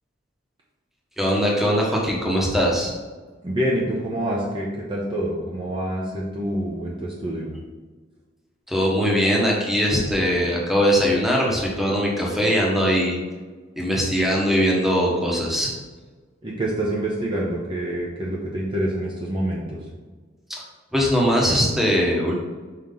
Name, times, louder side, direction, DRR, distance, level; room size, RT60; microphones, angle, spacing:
voice 1, 1.2-2.9 8.7-13.2 13.8-15.7 20.9-22.4, equal, ahead, -3 dB, 1.2 m, -21 dB
voice 2, 3.4-7.5 16.4-19.8, right 1 dB, 25° right, -4 dB, 0.8 m, -26 dB
5.8 x 4.5 x 3.8 m, 1.3 s
head